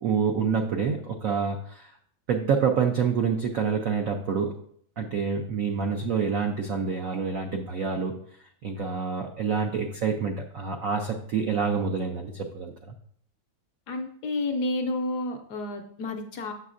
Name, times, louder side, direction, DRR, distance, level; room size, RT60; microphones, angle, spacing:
voice 1, 0.0-1.9 2.3-4.5 5.0-8.2 8.6-12.9, right 6 dB, 85° right, 3 dB, 0.7 m, -27 dB
voice 2, 13.9-16.5, left 2 dB, 70° left, 6 dB, 1.0 m, -30 dB
7.0 x 6.7 x 2.5 m, 0.64 s
omnidirectional pair, 2.1 m